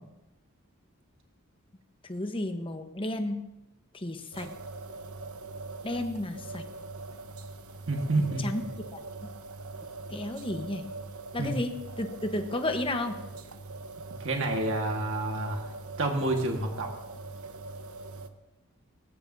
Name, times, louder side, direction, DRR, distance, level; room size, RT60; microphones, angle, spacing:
voice 1, 2.0-3.4 3.9-4.5 5.8-6.7 8.4-8.6 8.9-9.3 10.1-10.9 11.3-13.2, left 1 dB, 25° left, 7 dB, 1.0 m, -33 dB
sound 1, 4.3-18.3, right 3 dB, 85° right, 1.0 m, -42 dB
voice 2, 7.9-8.7 11.4-11.6 14.2-15.7 16.0-16.9, right 2 dB, 60° right, 2 dB, 1.6 m, -29 dB
19.5 x 18.0 x 2.7 m, 0.96 s
head